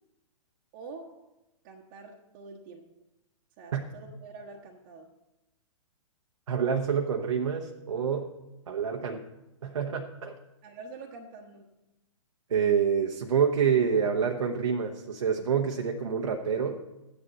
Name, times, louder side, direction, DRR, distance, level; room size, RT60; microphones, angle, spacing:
voice 1, 0.7-1.3 1.6-2.9 3.6-5.1 10.6-11.7, right 3 dB, 35° right, -2 dB, 1.2 m, -46 dB
voice 2, 6.5-8.3 8.7-9.2 9.6-10.4 12.5-16.8, right 7 dB, 60° right, 2 dB, 1.0 m, -27 dB
13.5 x 9.9 x 4.1 m, 0.99 s
figure-of-eight pair, 115°, 18 cm